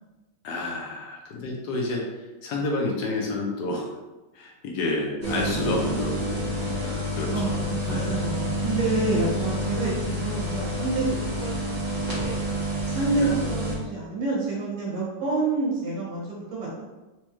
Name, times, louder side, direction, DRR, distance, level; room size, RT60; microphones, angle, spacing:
voice 1, 0.4-2.0 2.4-3.9 4.3-6.2 6.6-8.1 11.6-11.7 13.2-13.4, left 2 dB, 80° left, -1 dB, 0.9 m, -30 dB
sound 1, 5.2-13.7, equal, 30° right, 0.9 m, -28 dB
voice 2, 7.3-12.4 12.9-16.8, right 3 dB, 70° right, -6 dB, 1.9 m, -28 dB
4.3 x 2.2 x 3.0 m, 1.1 s
omnidirectional pair, 2.4 m